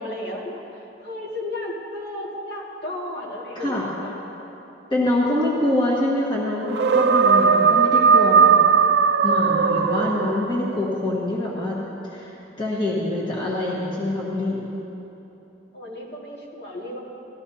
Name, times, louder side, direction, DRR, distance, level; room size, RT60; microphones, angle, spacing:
voice 1, 0.0-4.1 5.2-6.1 15.7-17.0, left 1 dB, 60° left, -4 dB, 2.1 m, -34 dB
voice 2, 4.9-8.6 9.2-11.8 12.1-12.3 12.6-14.7, left 1 dB, 25° left, -5 dB, 1.6 m, -25 dB
sound 1, 6.7-10.8, right 6 dB, 60° right, 0.4 m, -18 dB
18.0 x 13.5 x 2.8 m, 3.0 s
head